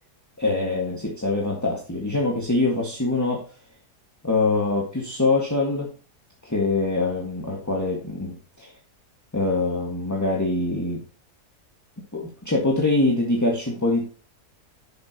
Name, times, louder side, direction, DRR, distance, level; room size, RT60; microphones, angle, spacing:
voice 1, 0.4-3.4 4.2-5.9 6.4-8.7 9.3-11.0 12.1-14.1, left 2 dB, 10° left, -1 dB, 1.7 m, -24 dB
10.5 x 7.3 x 2.9 m, 0.36 s
omnidirectional pair, 1.7 m